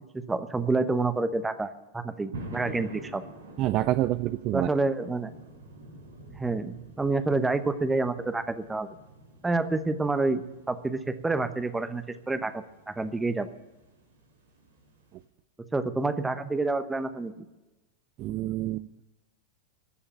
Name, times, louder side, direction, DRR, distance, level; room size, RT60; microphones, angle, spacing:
voice 1, 0.1-3.2 4.5-5.3 6.3-9.0 9.4-10.4 10.7-13.5 15.7-17.4, right 3 dB, 10° right, 12 dB, 1.0 m, -28 dB
sound 1, 2.3-15.2, right 2 dB, 75° right, 3.1 m, -48 dB
voice 2, 3.6-4.7 18.2-19.0, right 15 dB, 40° right, 14 dB, 0.4 m, -27 dB
14.0 x 7.0 x 10.0 m, 1.1 s
figure-of-eight pair, 90°, 0 cm